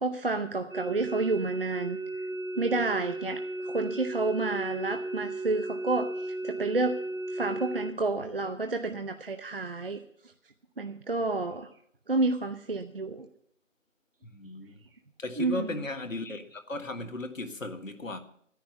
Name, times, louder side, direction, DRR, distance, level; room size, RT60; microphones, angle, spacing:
voice 1, 0.0-2.0 2.6-7.0 7.3-10.0 10.8-11.7 12.1-13.3 15.4-15.6, right 3 dB, 45° right, 0.8 m, -30 dB
sound 1, 0.7-7.9, right 2 dB, 85° right, 1.4 m, -35 dB
voice 2, 14.2-14.9 15.2-18.2, left 2 dB, 80° left, 1.8 m, -36 dB
12.5 x 10.0 x 6.8 m
figure-of-eight pair, 170°, 39 cm